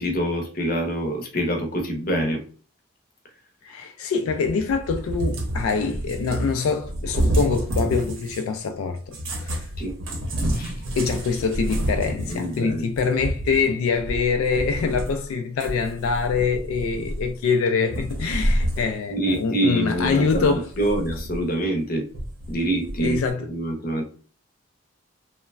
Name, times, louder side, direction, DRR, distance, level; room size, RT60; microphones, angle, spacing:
voice 1, 0.0-2.4 9.8-10.0 10.5-10.8 12.3-12.9 19.1-22.1 22.5-24.0, right 1 dB, 45° left, 0.6 m, -26 dB
voice 2, 3.6-9.6 11.0-20.7 23.0-23.5, left 5 dB, 90° left, 0.3 m, -24 dB
Cat, 4.3-8.5 9.1-15.2 15.6-17.5 17.9-18.9 19.3-19.4 20.0-21.5 22.1-23.3, right 1 dB, 70° right, 0.7 m, -29 dB
3.0 x 2.1 x 2.3 m
head